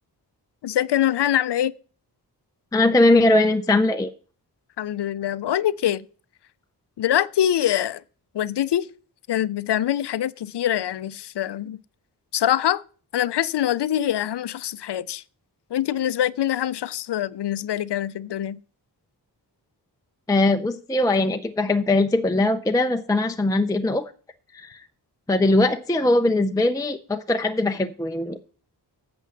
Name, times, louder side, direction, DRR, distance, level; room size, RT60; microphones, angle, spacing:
voice 1, 0.6-1.7 4.8-6.1 7.0-8.0 8.3-8.9 9.3-11.8 12.3-12.8 13.1-15.2 15.7-18.6, left 11 dB, 75° left, 0.5 m, -24 dB
voice 2, 2.7-4.1 20.3-24.1 24.5-24.8 25.3-28.4, left 2 dB, 10° left, 0.5 m, -20 dB
8.3 x 6.0 x 7.2 m
wide cardioid pair, 85°, 42 cm